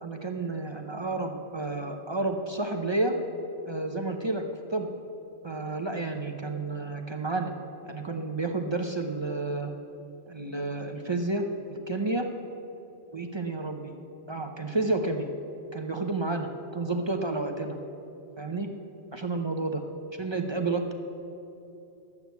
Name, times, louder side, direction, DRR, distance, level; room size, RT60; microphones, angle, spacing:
voice 1, 0.0-3.1 3.7-4.4 4.7-4.9 5.4-7.5 7.8-9.7 10.3-11.4 11.7-12.3 13.1-13.9 14.3-15.3 15.7-17.8 18.4-18.7 19.1-19.8 20.2-20.9, right 2 dB, 30° right, 4 dB, 0.7 m, -30 dB
11.5 x 8.3 x 8.2 m, 2.9 s
omnidirectional pair, 1.1 m